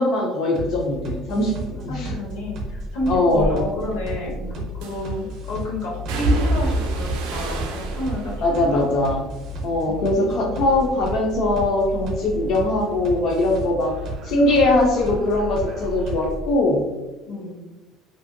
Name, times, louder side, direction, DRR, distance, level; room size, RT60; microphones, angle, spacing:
voice 1, 0.0-2.1 3.1-3.6 4.4-4.5 8.4-9.2 9.6-16.8, left 2 dB, 40° left, -1 dB, 0.3 m, -21 dB
sound 1, 0.5-16.5, right 1 dB, 40° right, 0.6 m, -33 dB
voice 2, 1.9-8.3 8.7-8.9 9.9-10.7 17.3-17.6, left 1 dB, 85° left, -2 dB, 0.9 m, -30 dB
sound 2, 3.3-3.6 4.8-5.3 6.1-10.3 10.6-11.3 11.6-14.9 15.2-16.3 16.6-16.7, right 1 dB, 85° right, 0.4 m, -29 dB
2.8 x 2.5 x 2.5 m, 1.1 s
cardioid pair, 180°, 0 cm